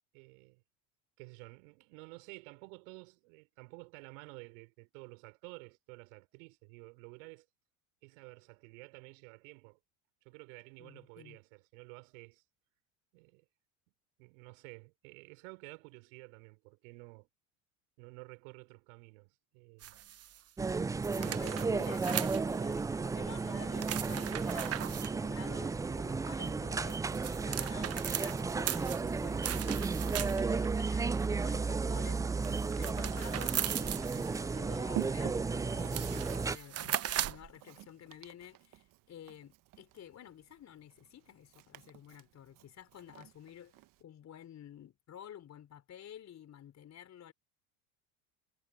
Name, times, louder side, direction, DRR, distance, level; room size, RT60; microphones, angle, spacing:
voice 1, 0.1-0.6 1.2-7.5 8.0-9.8 10.2-12.4 13.1-13.4 14.2-17.3 18.0-19.9 21.1-21.4, right 31 dB, 70° right, 5.9 m, -52 dB
voice 2, 10.8-11.4 21.1-47.3, left 10 dB, 40° left, 4.3 m, -52 dB
sound 1, 19.8-20.4 21.0-22.7 23.8-25.1 26.7-30.6 32.4-34.4 35.4-35.5 35.8-37.5, right 11 dB, 35° right, 1.2 m, -38 dB
sound 2, 20.6-36.6, right 4 dB, 10° right, 0.4 m, -34 dB
Walk footsteps, 29.0-44.0, right 16 dB, 50° right, 1.6 m, -50 dB
hypercardioid pair, 80°, 40 cm